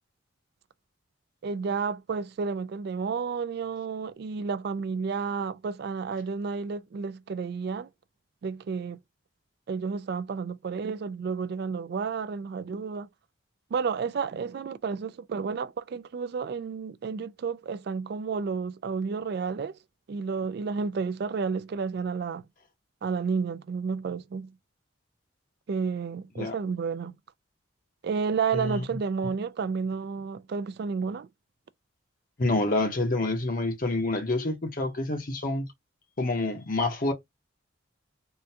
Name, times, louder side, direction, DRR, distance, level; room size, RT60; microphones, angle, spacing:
voice 1, 1.4-7.9 8.4-9.0 9.7-13.1 13.7-19.8 20.1-22.4 23.0-24.5 25.7-27.2 28.0-31.3, right 5 dB, 55° right, 0.3 m, -31 dB
voice 2, 28.5-29.0 32.4-35.7 36.2-37.1, left 2 dB, 45° left, 0.8 m, -27 dB
3.7 x 2.2 x 2.7 m
head